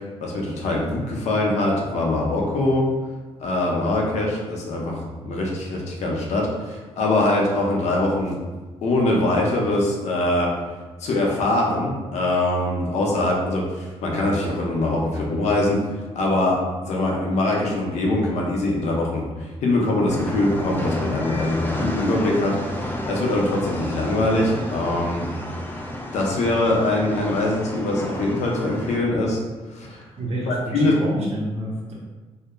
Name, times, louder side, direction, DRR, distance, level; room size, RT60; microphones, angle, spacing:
voice 1, 0.2-2.9 3.4-8.4 8.8-10.5 11.0-15.8 16.2-25.2 26.1-29.4 29.7-30.0 30.5-31.0, left 2 dB, 75° left, -1 dB, 0.6 m, -23 dB
sound 1, 20.1-29.0, left 1 dB, 15° left, 0.3 m, -31 dB
voice 2, 30.2-31.9, right 1 dB, 65° right, -4 dB, 0.7 m, -29 dB
2.3 x 2.0 x 3.0 m, 1.3 s
cardioid pair, 85°, 12 cm